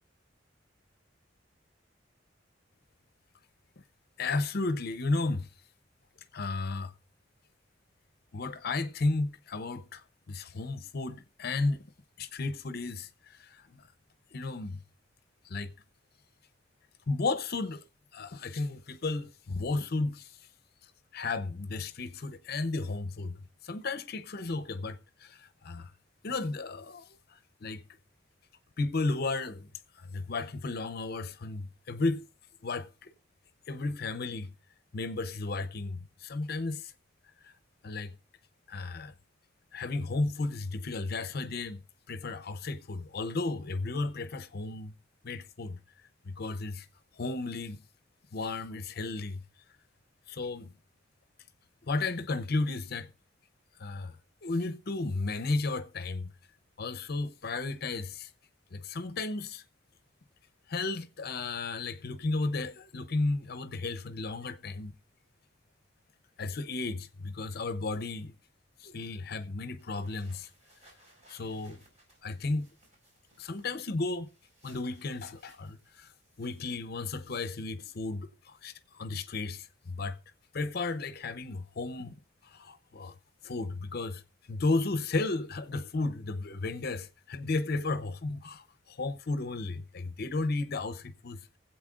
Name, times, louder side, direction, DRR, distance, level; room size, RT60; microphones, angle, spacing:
voice 1, 4.2-5.5 6.3-6.9 8.3-11.9 12.2-13.9 14.3-14.8 15.4-15.7 17.1-17.8 18.1-20.4 21.1-25.9 26.2-27.8 28.8-29.7 30.0-32.2 32.6-33.1 33.7-34.5 34.9-36.9 37.4-37.5 37.8-38.1 38.7-39.1 39.7-44.9 45.2-45.8 46.2-46.9 47.2-47.8 48.3-49.4 50.3-50.7 51.8-53.1 53.8-54.2 54.4-56.3 56.8-58.3 58.7-59.6 60.7-64.9 66.4-68.4 68.8-70.5 71.3-71.8 72.2-72.7 73.4-74.3 74.6-76.1 76.4-80.2 80.5-82.1 82.4-83.2 83.4-84.2 84.5-91.5, left 3 dB, 55° left, 0.7 m, -34 dB
sound 1, 69.8-76.8, right 1 dB, 40° right, 4.3 m, -64 dB
23.5 x 8.1 x 2.4 m
head